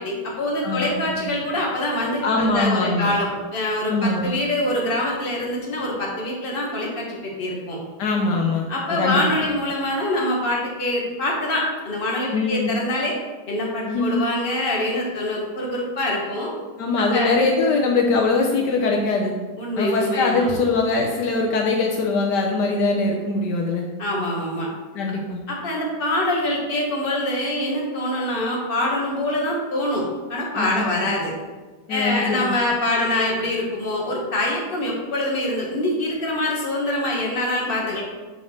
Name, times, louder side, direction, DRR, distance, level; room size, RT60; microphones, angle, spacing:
voice 1, 0.0-7.8 8.7-13.1 13.5-16.5 17.0-17.4 19.6-20.5 24.0-24.7 25.5-31.3 31.9-38.0, left 1 dB, 35° left, -2 dB, 1.7 m, -25 dB
voice 2, 0.6-1.2 2.2-3.2 3.9-4.3 8.0-8.6 8.9-9.2 12.3-12.7 13.9-14.2 16.8-19.3 19.8-23.9 24.9-25.4 30.6-31.1 31.9-32.6, left 3 dB, 75° left, 0 dB, 1.4 m, -22 dB
6.0 x 4.5 x 6.5 m, 1.3 s
omnidirectional pair, 1.9 m